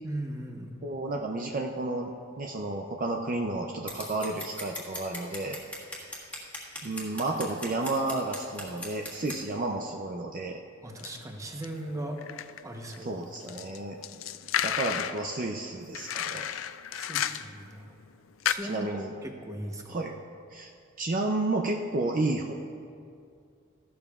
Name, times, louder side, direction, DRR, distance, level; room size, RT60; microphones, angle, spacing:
voice 1, 0.0-0.8 10.8-12.2 12.6-13.6 16.9-17.9 18.4-18.9 19.2-20.0, right 1 dB, 15° right, 2 dB, 0.9 m, -38 dB
voice 2, 0.8-5.6 6.8-10.6 13.1-14.0 14.6-16.6 18.7-19.1 19.9-20.1 20.5-20.7 21.0-22.5, right 2 dB, 40° right, 2 dB, 0.5 m, -31 dB
Scissors, 3.9-9.4, left 1 dB, 5° left, 1.7 m, -40 dB
sound 1, 11.0-11.2 11.6-13.0 13.3-15.3 15.9-17.6 18.0-18.1 18.4-18.5, left 10 dB, 70° left, 0.4 m, -32 dB
15.5 x 12.0 x 2.4 m, 2.4 s
head